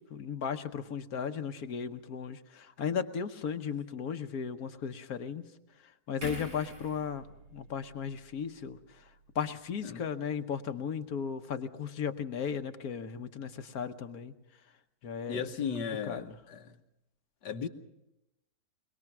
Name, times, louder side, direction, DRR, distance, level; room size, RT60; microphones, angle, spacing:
voice 1, 0.0-5.4 6.1-9.1 9.3-14.3 15.0-15.5 16.0-16.4, left 7 dB, 60° left, 1.4 m, -36 dB
sound 1, 6.2-9.6 9.9-10.1, left 1 dB, 85° right, 7.8 m, -47 dB
voice 2, 15.3-16.7 17.4-17.7, left 6 dB, 75° left, 1.7 m, -36 dB
23.0 x 21.5 x 6.0 m
omnidirectional pair, 1.9 m